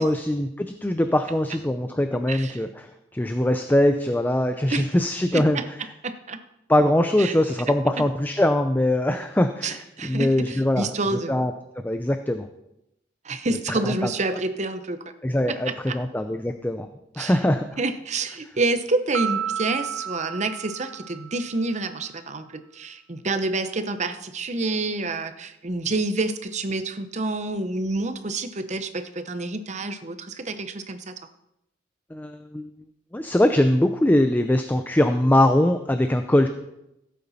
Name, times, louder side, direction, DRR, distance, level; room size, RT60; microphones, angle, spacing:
voice 1, 0.0-2.7 3.1-5.6 6.7-10.9 11.3-12.5 13.7-14.1 15.2-16.9 17.2-17.7 32.1-32.7 33.1-36.5, left 1 dB, 10° left, 8 dB, 0.5 m, -22 dB
voice 2, 2.3-2.6 4.7-4.8 5.3-5.6 6.0-6.4 7.2-7.4 9.6-11.3 13.2-15.0 15.7-15.9 17.2-17.4 17.8-31.1, right 2 dB, 40° right, 9 dB, 0.8 m, -28 dB
Piano, 19.1-21.7, right 8 dB, 80° right, 0.8 m, -32 dB
15.5 x 8.5 x 4.2 m, 0.86 s
head